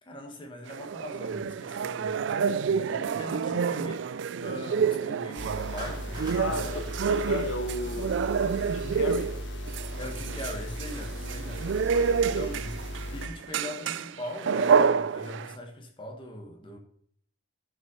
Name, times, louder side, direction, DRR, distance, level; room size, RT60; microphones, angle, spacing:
voice 1, 0.0-4.1 4.4-6.9 10.0-11.7 12.3-12.7 13.1-16.8, left 1 dB, 25° left, 1.8 m, -41 dB
sound 1, 0.7-15.5, right 6 dB, 70° right, 0.3 m, -28 dB
sound 2, 5.4-13.3, equal, 65° left, 1.4 m, -37 dB
Clapping, 5.8-8.2, right 2 dB, 25° right, 2.6 m, -45 dB
voice 2, 6.4-8.2 8.7-9.4 11.9-12.4, left 3 dB, 85° left, 0.9 m, -35 dB
11.0 x 5.8 x 5.7 m
head